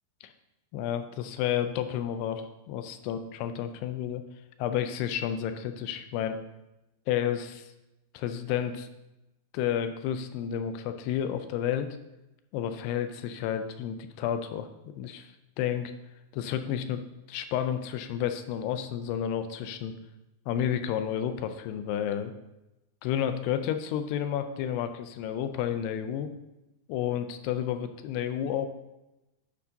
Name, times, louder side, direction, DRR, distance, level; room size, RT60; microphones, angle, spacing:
voice 1, 0.7-4.2 4.6-6.4 7.1-7.7 8.1-8.9 9.5-11.9 12.5-15.3 15.6-15.9 16.3-17.0 17.3-19.9 20.5-22.3 23.0-26.3 26.9-28.7, left 9 dB, 85° left, 9 dB, 2.7 m, -31 dB
9.9 x 9.3 x 2.9 m, 0.95 s
omnidirectional pair, 4.7 m